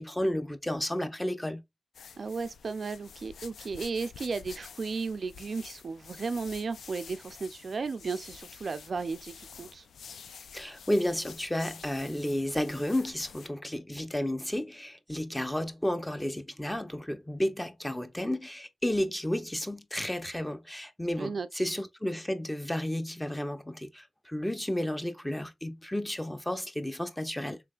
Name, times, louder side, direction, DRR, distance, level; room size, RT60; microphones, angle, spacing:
voice 1, 0.0-1.6 10.5-27.6, left 1 dB, 10° left, 0.6 m, -32 dB
sound 1, 1.9-13.5, left 6 dB, 90° left, 0.4 m, -49 dB
voice 2, 2.2-9.9 21.2-21.7, right 4 dB, 55° right, 0.3 m, -35 dB
3.6 x 3.3 x 2.3 m
cardioid pair, 85°, 0 cm